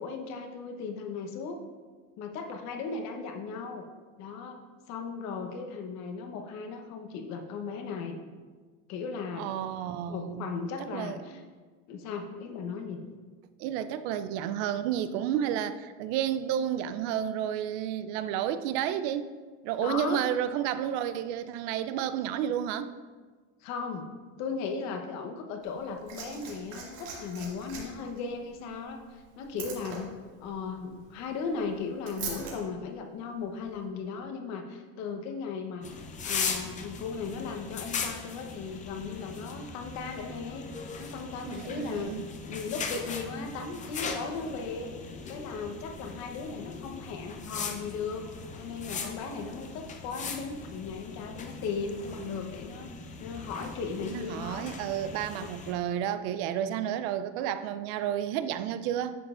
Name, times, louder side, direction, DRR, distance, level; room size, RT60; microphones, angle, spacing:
voice 1, 0.0-1.6 2.2-3.9 4.2-4.6 4.9-8.2 8.9-9.5 10.1-11.4 11.9-13.0 19.8-20.2 23.6-24.1 24.4-30.1 30.4-35.9 36.2-40.7 41.0-42.2 42.5-44.9 45.3-48.2 48.6-52.9 53.2-54.7, left 5 dB, 55° left, 5 dB, 1.0 m, -37 dB
voice 2, 9.4-10.6 10.9-11.4 13.6-19.3 19.6-22.9 41.4-42.2 54.1-59.2, right 10 dB, 70° right, 12 dB, 0.5 m, -31 dB
Liquid, 25.6-32.5 33.6-33.7, right 6 dB, 85° right, 2.3 m, -43 dB
sound 1, 35.8-55.7, left 5 dB, 20° left, 0.6 m, -39 dB
10.0 x 6.7 x 2.5 m, 1.4 s
cardioid pair, 150°, 33 cm